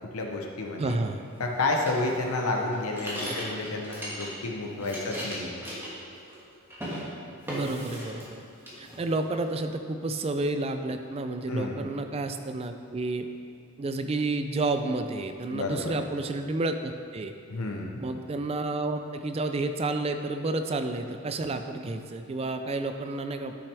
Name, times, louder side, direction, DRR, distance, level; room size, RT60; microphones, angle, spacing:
voice 1, 0.1-1.0 1.4-5.6 11.5-11.9 15.5-16.0 17.5-18.0, left 2 dB, 85° left, 1 dB, 0.8 m, -30 dB
voice 2, 0.8-1.3 3.2-3.5 7.5-8.4 8.8-13.3 13.8-17.3 18.0-23.5, right 2 dB, 30° right, 7 dB, 0.3 m, -30 dB
sound 1, 1.8-4.5 4.7-6.4 6.7-7.0 7.5-8.4 8.6-9.4, equal, 10° right, 1.4 m, -38 dB
9.9 x 5.9 x 3.4 m, 2.4 s
head